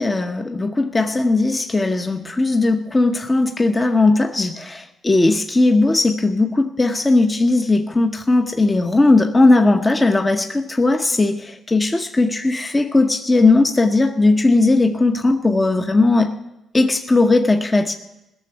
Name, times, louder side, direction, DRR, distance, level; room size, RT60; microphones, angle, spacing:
voice 1, 0.0-16.3 16.7-17.9, left 2 dB, 20° left, 1.0 m, -17 dB
17.0 x 6.8 x 9.3 m
cardioid pair, 90°, 0 cm